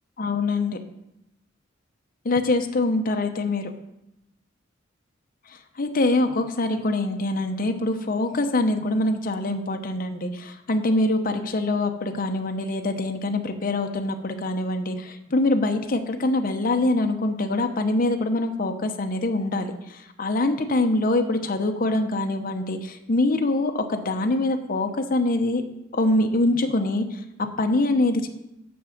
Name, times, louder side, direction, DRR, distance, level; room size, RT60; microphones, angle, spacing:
voice 1, 0.2-0.8 2.2-3.7 5.5-25.6 25.9-28.3, left 2 dB, 45° left, 5 dB, 0.7 m, -24 dB
6.1 x 6.1 x 7.1 m, 0.85 s
head